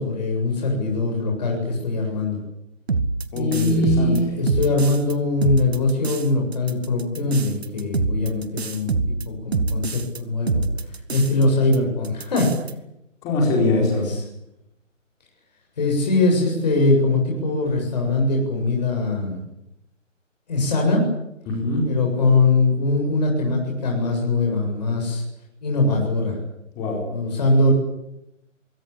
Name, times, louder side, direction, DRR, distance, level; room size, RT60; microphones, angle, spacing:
voice 1, 0.0-2.4 3.3-10.6 11.1-12.5 13.6-14.2 15.8-19.4 20.5-21.1 21.8-25.2 25.6-26.4 27.1-27.7, left 2 dB, 35° left, 0 dB, 7.7 m, -22 dB
sound 1, 2.9-5.1 5.4-6.2 6.5-10.2 10.5-11.4 11.7-11.8 12.0-12.7, right 3 dB, 55° right, 2.0 m, -25 dB
voice 2, 3.3-4.2 13.2-14.1 21.5-22.0 26.7-27.1, left 2 dB, 10° left, 0 dB, 4.4 m, -23 dB
25.0 x 23.0 x 8.7 m, 0.84 s
hypercardioid pair, 180°, 39 cm